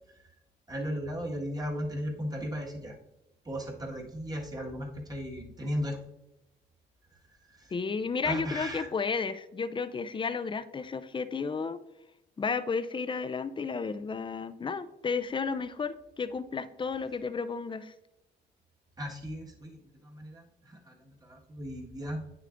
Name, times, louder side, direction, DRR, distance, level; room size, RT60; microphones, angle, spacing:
voice 1, 0.7-3.0 3.4-6.0 7.1-7.7 8.2-8.9 19.0-22.2, equal, 20° right, -1 dB, 1.6 m, -36 dB
voice 2, 7.7-11.8 12.4-17.9, left 5 dB, 25° left, 13 dB, 0.5 m, -32 dB
9.0 x 6.7 x 2.5 m, 0.89 s
cardioid pair, 90°, 20 cm